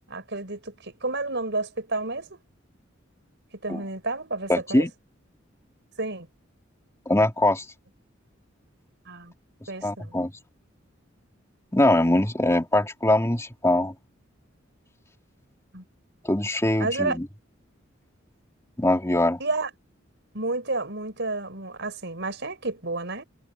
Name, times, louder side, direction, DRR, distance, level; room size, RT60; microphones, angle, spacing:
voice 1, 0.1-2.4 3.6-4.9 6.0-6.3 9.1-9.3 9.7-10.1 15.7-15.8 16.8-17.2 19.4-19.7 20.3-23.2, right 2 dB, 60° right, 6.2 m, -30 dB
voice 2, 4.5-4.9 7.1-7.6 9.8-10.4 11.7-13.9 16.2-17.3 18.8-19.4, left 1 dB, 15° left, 2.7 m, -22 dB
head